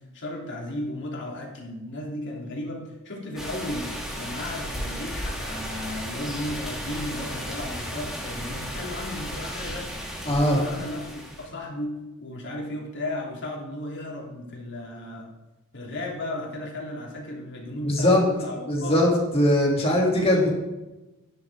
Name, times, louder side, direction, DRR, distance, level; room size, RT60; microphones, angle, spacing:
voice 1, 0.1-3.9 4.1-9.9 10.3-11.9 12.2-15.3 15.7-19.0 19.8-20.5, left 1 dB, 55° left, -2 dB, 3.2 m, -34 dB
sound 1, 3.4-11.5, equal, ahead, 2.6 m, -34 dB
voice 2, 10.2-10.6 17.8-18.2 18.7-20.5, left 1 dB, 30° left, -2 dB, 2.9 m, -21 dB
12.0 x 10.5 x 3.7 m, 1.0 s
head